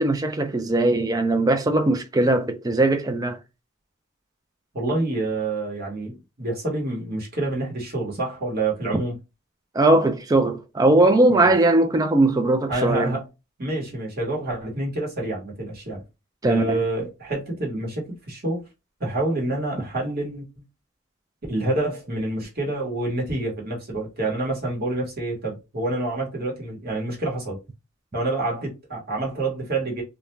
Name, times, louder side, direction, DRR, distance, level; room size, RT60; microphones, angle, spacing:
voice 1, 0.0-3.4 9.7-13.2 16.4-16.8, right 2 dB, 15° right, 0.3 m, -19 dB
voice 2, 4.7-9.2 11.3-11.5 12.7-13.2 13.6-16.0 16.4-18.6 19.0-20.5 21.5-27.6 28.1-30.0, right 2 dB, 45° right, 1.2 m, -27 dB
2.4 x 2.1 x 3.1 m
head